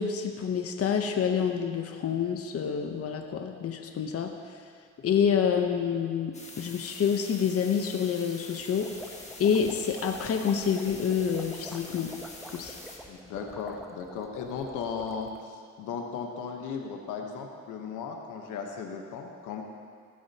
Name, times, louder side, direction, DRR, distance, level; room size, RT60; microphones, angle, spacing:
voice 1, 0.0-4.3 5.0-8.9 9.4-12.1 12.5-12.8, left 7 dB, 50° left, 4 dB, 0.9 m, -27 dB
sound 1, 6.3-13.0, left 2 dB, 20° left, 1.6 m, -46 dB
sound 2, 8.6-15.4, equal, ahead, 0.9 m, -47 dB
voice 2, 13.1-19.6, left 6 dB, 90° left, 2 dB, 1.2 m, -36 dB
16.0 x 8.6 x 2.9 m, 2.1 s
cardioid pair, 90°, 30 cm